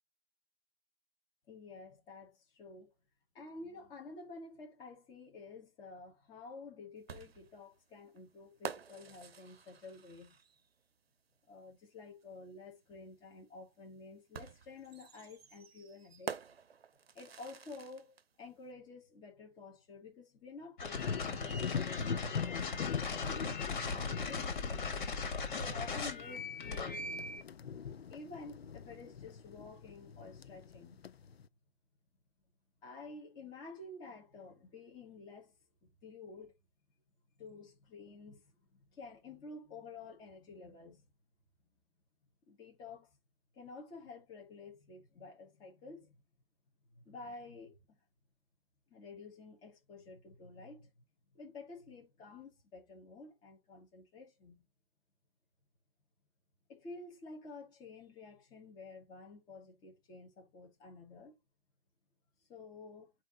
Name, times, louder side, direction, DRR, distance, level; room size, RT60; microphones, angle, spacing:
voice 1, 1.5-2.9 3.3-10.4 11.5-16.4 17.1-23.0 23.8-25.0 25.5-27.1 28.1-31.1 32.8-35.5 35.8-36.5 37.4-41.0 42.5-43.1 43.5-46.2 46.9-48.0 48.9-50.9 51.3-54.7 56.7-61.4 62.5-63.1, left 3 dB, 15° left, 1.7 m, -51 dB
sound 1, 7.1-10.7 12.2-12.3 14.3-18.3, right 7 dB, 90° right, 0.8 m, -48 dB
sound 2, 20.8-27.4, left 4 dB, 50° left, 2.4 m, -39 dB
sound 3, 20.9-31.5, left 7 dB, 85° left, 0.7 m, -42 dB
8.9 x 3.1 x 4.1 m
hypercardioid pair, 155°, 30 cm